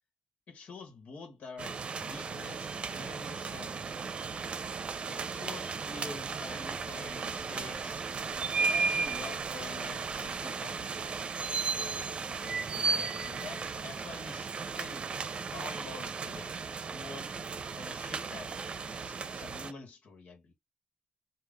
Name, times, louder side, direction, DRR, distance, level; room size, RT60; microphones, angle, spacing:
voice 1, 0.5-4.3 5.0-8.1 8.5-11.0 11.6-15.1 15.5-17.4 17.7-18.6 18.9-20.5, left 4 dB, 80° left, 1.4 m, -47 dB
sound 1, 1.6-19.7, right 4 dB, 50° right, 0.6 m, -35 dB
3.6 x 2.5 x 3.7 m
cardioid pair, 90°, 2 cm